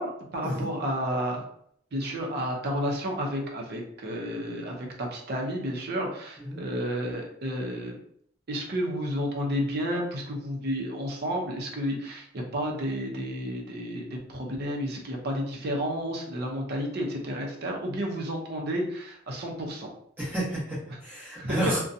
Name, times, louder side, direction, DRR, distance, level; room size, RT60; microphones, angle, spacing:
voice 1, 0.0-1.4 1.9-8.0 8.5-19.9 21.4-21.7, equal, 55° right, 0 dB, 0.6 m, -31 dB
voice 2, 20.2-21.8, right 1 dB, 10° right, -8 dB, 1.0 m, -30 dB
2.6 x 2.2 x 2.6 m, 0.66 s
head